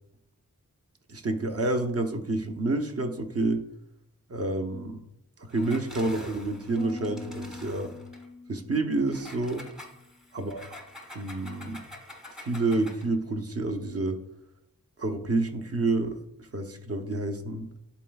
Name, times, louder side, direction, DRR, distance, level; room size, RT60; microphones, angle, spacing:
voice 1, 1.1-3.6 4.3-5.0 5.5-7.9 8.5-9.6 10.3-10.6 11.1-11.8 12.4-14.2 15.0-16.2 16.5-17.7, right 2 dB, 45° right, 6 dB, 0.8 m, -28 dB
Engine, 5.5-8.3 9.1-13.1, left 1 dB, ahead, 1.1 m, -47 dB
sound 1, 6.8-10.2, left 3 dB, 25° left, 0.4 m, -43 dB
11.0 x 4.2 x 2.3 m, 0.78 s
wide cardioid pair, 75°, 34 cm